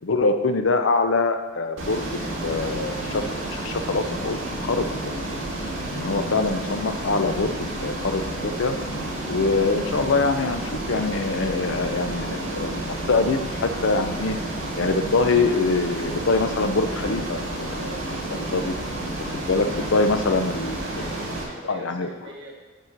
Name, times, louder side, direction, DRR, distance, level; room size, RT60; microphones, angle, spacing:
voice 1, 0.0-2.1 2.4-4.4 4.6-5.1 5.9-7.6 7.8-8.8 9.2-14.4 14.8-18.0 18.3-18.7 19.2-21.0 21.7-22.1, left 3 dB, 65° left, 7 dB, 0.6 m, -24 dB
Ocean, 1.8-21.4, right 1 dB, 80° right, 1.9 m, -30 dB
voice 2, 19.7-20.0 20.8-22.5, right 1 dB, 65° right, -2 dB, 1.7 m, -42 dB
7.5 x 4.2 x 6.5 m, 1.2 s
head